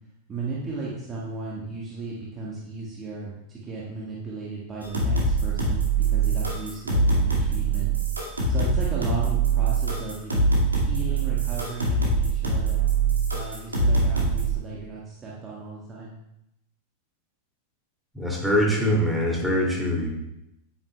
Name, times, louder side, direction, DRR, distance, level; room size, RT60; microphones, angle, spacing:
voice 1, 0.3-7.9 8.2-10.5 10.8-12.9 13.3-16.2, right 4 dB, 20° right, -6 dB, 1.6 m, -35 dB
sound 1, 4.8-14.6, right 3 dB, 80° right, 2.1 m, -23 dB
voice 2, 18.1-20.1, equal, ahead, -3 dB, 2.6 m, -23 dB
9.4 x 9.0 x 2.3 m, 0.85 s
figure-of-eight pair, 90°, 0 cm